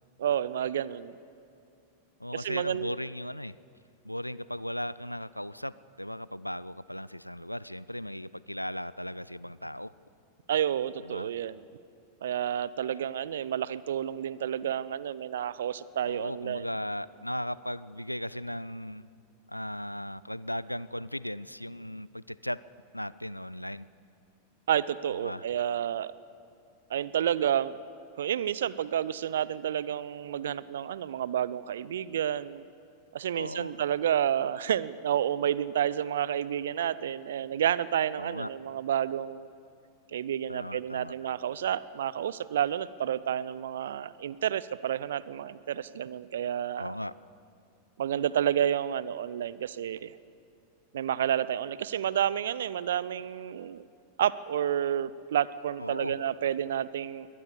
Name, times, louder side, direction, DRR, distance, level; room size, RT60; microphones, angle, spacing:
voice 1, 0.2-1.1 2.3-2.9 10.5-11.6 12.2-16.7 24.7-26.1 26.9-27.8 28.2-32.6 33.1-39.5 40.1-46.9 48.0-50.1 50.9-53.8 54.2-57.3, right 10 dB, 60° right, 19 dB, 0.6 m, -30 dB
voice 2, 2.2-3.6 4.0-9.9 11.0-11.3 16.0-19.1 19.5-22.6 22.9-23.9 25.1-25.5 33.3-33.8 38.2-38.5 40.5-41.1 46.8-47.1 55.8-56.1, equal, 90° left, 19 dB, 0.4 m, -37 dB
23.0 x 18.5 x 6.9 m, 2.5 s
figure-of-eight pair, 90°, 0 cm